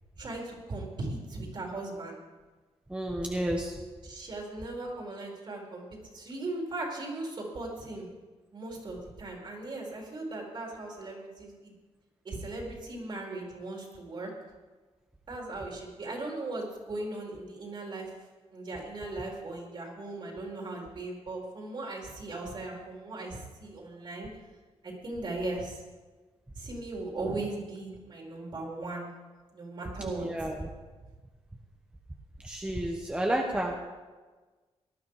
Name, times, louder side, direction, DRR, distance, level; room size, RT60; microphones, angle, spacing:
voice 1, 0.2-2.1 4.0-8.1 8.5-11.7 12.2-14.3 15.3-18.1 18.5-24.3 24.8-25.8 26.6-29.1 29.5-30.5, right 2 dB, 45° right, -1 dB, 4.3 m, -38 dB
voice 2, 2.9-3.8 30.0-30.7 32.4-33.7, right 1 dB, 10° right, 1 dB, 1.2 m, -31 dB
18.5 x 12.0 x 4.9 m, 1.3 s
wide cardioid pair, 130°, 11 cm